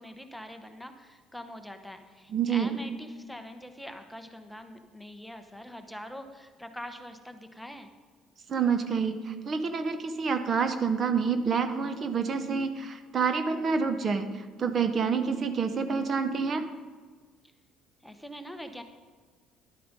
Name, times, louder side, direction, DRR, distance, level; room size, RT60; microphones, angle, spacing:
voice 1, 0.0-7.9 18.0-18.8, equal, ahead, 6 dB, 0.8 m, -43 dB
voice 2, 2.3-2.7 8.5-16.6, right 5 dB, 35° right, 9 dB, 0.7 m, -28 dB
11.0 x 8.4 x 5.2 m, 1.5 s
cardioid pair, 140°, 0 cm